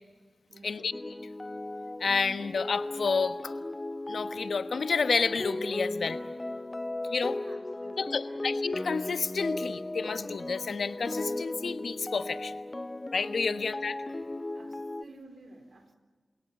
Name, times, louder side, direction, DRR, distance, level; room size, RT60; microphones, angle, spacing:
voice 1, 0.5-0.9 7.2-8.5 13.5-13.8 14.5-16.0, right 2 dB, 75° right, 6 dB, 3.9 m, -53 dB
sound 1, 0.9-15.0, left 2 dB, 30° left, 0.7 m, -36 dB
voice 2, 2.0-3.5 4.1-6.2 7.1-7.4 8.0-12.5 13.1-13.9, left 5 dB, 85° left, 10 dB, 1.2 m, -30 dB
29.0 x 18.0 x 10.0 m, 1.5 s
cardioid pair, 45°, 0 cm